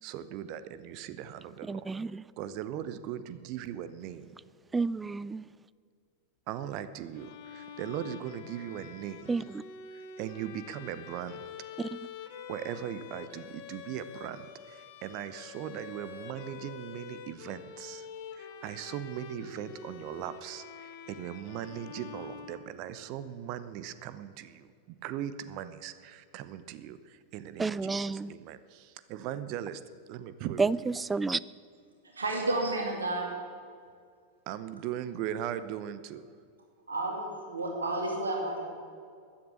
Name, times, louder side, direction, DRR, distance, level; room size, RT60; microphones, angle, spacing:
voice 1, 0.0-1.9 2.4-4.3 6.5-9.3 10.2-11.5 12.5-18.1 18.3-29.8 30.1-30.7 34.5-36.2, right 10 dB, 40° right, 0.8 m, -39 dB
voice 2, 1.7-2.2 4.7-5.4 9.3-9.6 11.8-12.0 27.6-28.3 30.6-31.4, right 4 dB, 10° right, 0.3 m, -30 dB
Bowed string instrument, 7.1-23.1, left 6 dB, 50° left, 1.3 m, -46 dB
voice 3, 32.1-33.3 36.9-38.6, right 2 dB, 75° right, 2.5 m, -31 dB
14.5 x 10.5 x 8.5 m
figure-of-eight pair, 90°, 0 cm